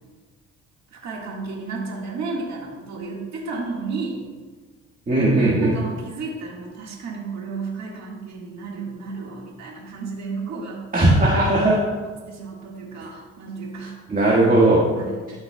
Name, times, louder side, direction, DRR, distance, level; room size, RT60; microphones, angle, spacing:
voice 1, 0.9-4.3 5.6-10.8 12.0-14.0 15.0-15.3, right 4 dB, 65° right, -2 dB, 1.7 m, -33 dB
voice 2, 5.1-5.7 10.9-11.8 14.1-14.8, right 2 dB, 25° right, -5 dB, 1.6 m, -17 dB
12.5 x 5.8 x 2.3 m, 1.4 s
cardioid pair, 90°, 30 cm